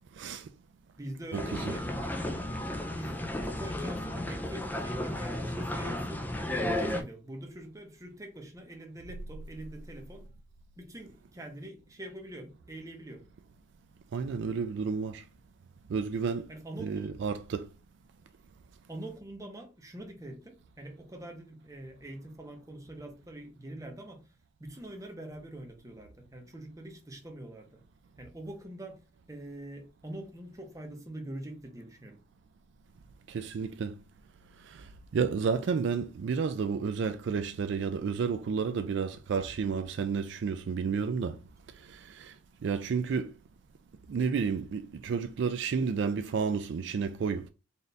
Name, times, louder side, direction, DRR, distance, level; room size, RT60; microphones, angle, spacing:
voice 1, 0.2-0.5 1.3-1.4 14.1-15.3 15.9-16.5 16.8-17.7 33.3-33.9 34.6-41.4 41.8-42.3 42.6-43.3 44.1-47.5, right 5 dB, 60° right, 0.3 m, -31 dB
voice 2, 1.0-1.9 2.9-10.3 10.8-13.2 16.5-17.2 18.9-24.2 24.6-27.8 28.2-29.0 29.3-32.2, right 1 dB, 15° right, 0.8 m, -44 dB
sound 1, 1.3-7.0, left 1 dB, 10° left, 0.4 m, -33 dB
4.1 x 2.5 x 3.3 m
head